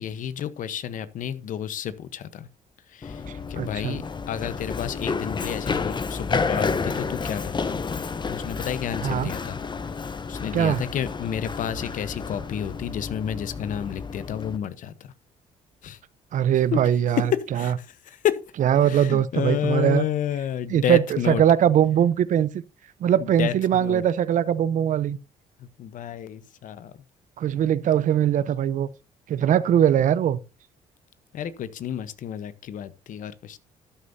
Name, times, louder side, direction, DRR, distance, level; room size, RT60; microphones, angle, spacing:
voice 1, 0.0-2.5 2.9-3.2 3.5-4.0 4.3-9.6 10.3-15.1 15.8-16.0 16.7-16.8 17.2-18.4 18.8-21.4 23.2-24.0 25.6-26.9 31.3-33.6, left 9 dB, 65° left, 1.0 m, -30 dB
Run, 3.0-14.6, left 4 dB, 30° left, 0.9 m, -30 dB
voice 2, 3.6-4.0 9.0-9.3 10.5-10.8 16.3-17.3 17.6-17.7 18.6-20.0 20.7-22.5 23.0-25.2 27.4-28.9 29.3-30.4, right 10 dB, 60° right, 0.7 m, -21 dB
12.5 x 9.6 x 2.7 m
supercardioid pair, 65°, 15 cm